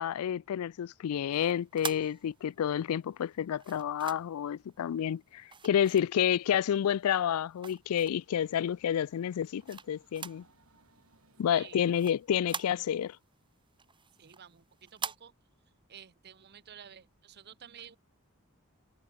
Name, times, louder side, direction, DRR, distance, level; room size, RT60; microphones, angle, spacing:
voice 1, 0.0-10.4 11.4-13.2, left 9 dB, 80° left, 0.3 m, -30 dB
sound 1, 1.3-2.8 3.6-4.5 5.5-6.6 7.0-8.4 8.9-10.5 10.8-10.9 11.3-13.2 13.6-15.2, right 6 dB, 25° right, 1.5 m, -43 dB
Train, 7.6-12.3, right 3 dB, 75° right, 5.8 m, -68 dB
voice 2, 11.5-11.8 14.2-15.3 15.9-18.0, right 8 dB, 50° right, 0.8 m, -51 dB
head